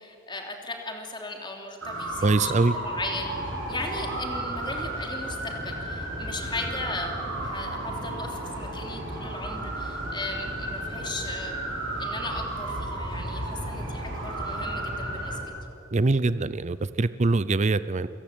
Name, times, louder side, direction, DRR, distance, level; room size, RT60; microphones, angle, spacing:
voice 1, 0.0-3.3 3.7-11.6 12.0-15.4, left 2 dB, 25° left, 2 dB, 3.1 m, -37 dB
sound 1, 1.8-15.4, right 1 dB, 85° right, 6.5 m, -33 dB
voice 2, 2.2-2.7 15.9-18.1, right 3 dB, 35° right, 15 dB, 0.5 m, -23 dB
29.5 x 16.5 x 9.0 m, 2.8 s
head